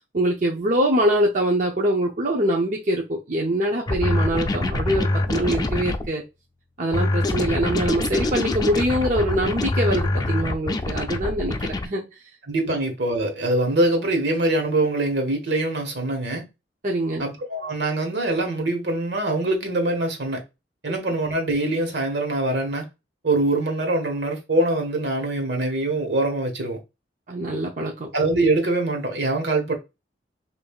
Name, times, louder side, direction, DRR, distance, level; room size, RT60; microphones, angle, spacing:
voice 1, 0.1-6.2 6.8-12.1 12.6-12.8 16.8-17.2 20.9-21.0 27.3-28.1, right 1 dB, 45° right, 0.7 m, -24 dB
sound 1, 3.9-6.1 6.9-11.9, left 2 dB, 20° left, 0.4 m, -24 dB
voice 2, 12.5-16.4 17.2-20.4 20.8-22.9 23.2-26.8 28.1-29.8, right 2 dB, 75° right, 1.3 m, -23 dB
5.4 x 2.6 x 2.3 m
head